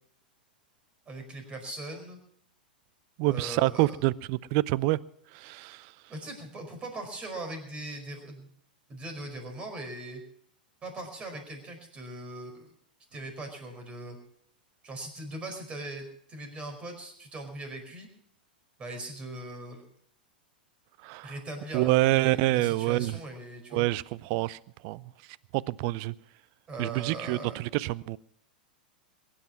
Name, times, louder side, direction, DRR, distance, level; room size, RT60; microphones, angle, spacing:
voice 1, 1.1-2.2 3.2-4.0 6.1-8.5 8.9-10.2 10.8-12.7 13.1-14.2 14.8-18.1 18.8-19.9 21.2-23.9 26.7-27.6, right 2 dB, 25° right, 4.9 m, -40 dB
voice 2, 3.2-5.0 5.3-5.8 21.0-21.3 21.7-23.1 23.7-24.6 24.8-25.0 25.5-26.1 26.8-28.2, right 19 dB, 45° right, 0.5 m, -27 dB
22.0 x 10.0 x 6.0 m
figure-of-eight pair, 95°, 5 cm